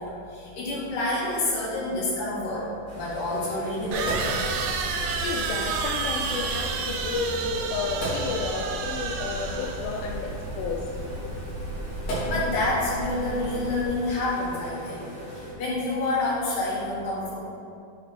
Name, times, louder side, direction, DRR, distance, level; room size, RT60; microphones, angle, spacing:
voice 1, 0.0-4.1 12.3-17.3, left 2 dB, 65° left, -7 dB, 3.3 m, -28 dB
sound 1, 2.3-2.4 3.9-10.0, right 5 dB, 85° right, 1.8 m, -31 dB
sound 2, 2.9-15.5, right 1 dB, 45° right, 0.6 m, -40 dB
Sink (filling or washing), 3.9-13.8, right 1 dB, 50° left, 3.0 m, -35 dB
voice 2, 5.0-10.9, left 4 dB, 90° left, 1 dB, 2.5 m, -32 dB
9.1 x 4.0 x 5.8 m, 2.5 s
omnidirectional pair, 4.2 m